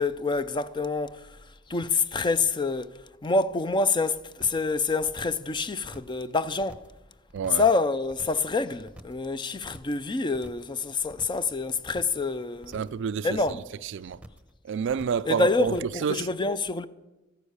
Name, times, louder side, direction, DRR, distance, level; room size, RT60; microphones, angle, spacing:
voice 1, 0.0-1.4 1.7-2.9 3.2-6.8 7.5-12.8 13.2-13.6 15.3-16.9, left 3 dB, 25° left, 0.4 m, -27 dB
sound 1, 4.4-4.7 5.0-5.5 5.8-6.2 6.5-7.0 7.3-7.7 8.0-8.5 8.8-9.3 9.5-10.0 10.3-10.7 11.0-11.5 11.8-12.2 12.5-13.0 13.3-13.8 14.1-14.5 14.8-15.3 15.6-16.0, right 1 dB, 5° right, 0.9 m, -47 dB
voice 2, 7.3-7.6 12.7-13.3 13.9-14.2 14.6-15.7 16.0-16.3, right 7 dB, 65° right, 0.3 m, -28 dB
13.5 x 9.9 x 6.5 m
head